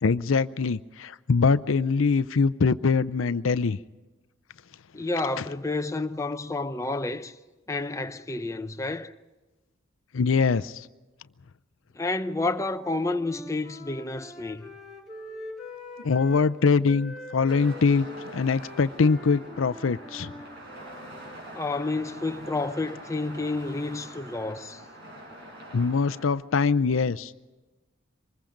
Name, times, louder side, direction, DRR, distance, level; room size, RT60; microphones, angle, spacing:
voice 1, 0.0-3.8 10.1-10.9 16.0-18.1 18.3-20.3 25.7-27.3, left 4 dB, 80° left, 0.6 m, -23 dB
voice 2, 4.9-7.3 7.7-9.1 11.9-14.7 21.5-24.8, left 2 dB, 15° left, 0.7 m, -30 dB
Wind instrument woodwind instrument, 12.7-16.5 16.8-21.4, left 2 dB, ahead, 4.8 m, -44 dB
sound 1, 17.5-26.3, right 1 dB, 60° right, 6.4 m, -44 dB
24.5 x 21.0 x 5.1 m
head